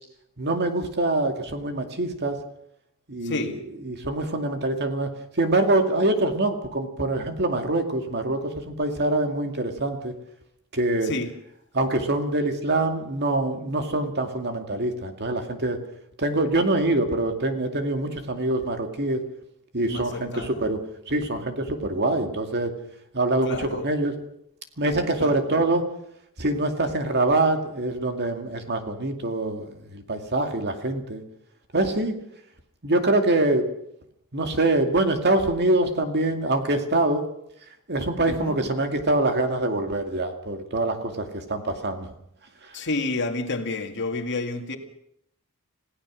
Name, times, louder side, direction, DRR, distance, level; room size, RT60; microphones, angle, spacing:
voice 1, 0.4-2.4 3.1-3.6 3.8-10.1 10.7-11.1 11.7-15.8 16.2-19.2 19.7-22.7 23.1-24.1 24.8-25.9 26.4-31.2 31.7-32.2 32.8-33.7 34.3-37.2 37.9-42.1 42.6-42.8, right 2 dB, 50° right, 6 dB, 2.3 m, -24 dB
voice 2, 3.2-3.6 11.0-11.3 19.8-20.7 23.4-23.9 25.2-25.4 38.3-38.6 42.7-44.8, left 3 dB, 55° left, 6 dB, 2.1 m, -30 dB
27.0 x 16.5 x 6.3 m, 0.75 s
head